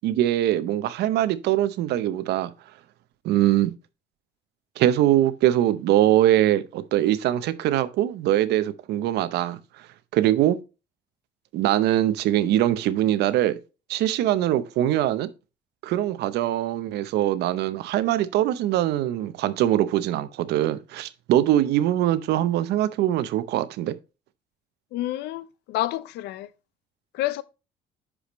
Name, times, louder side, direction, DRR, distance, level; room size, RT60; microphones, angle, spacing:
voice 1, 0.0-2.5 3.2-3.7 4.8-9.6 10.1-10.6 11.5-13.6 13.9-15.3 15.8-23.9, right 13 dB, 80° right, 0.7 m, -22 dB
voice 2, 24.9-26.5 27.1-27.4, left 15 dB, 80° left, 0.6 m, -29 dB
10.0 x 5.0 x 3.0 m
cardioid pair, 110°, 17 cm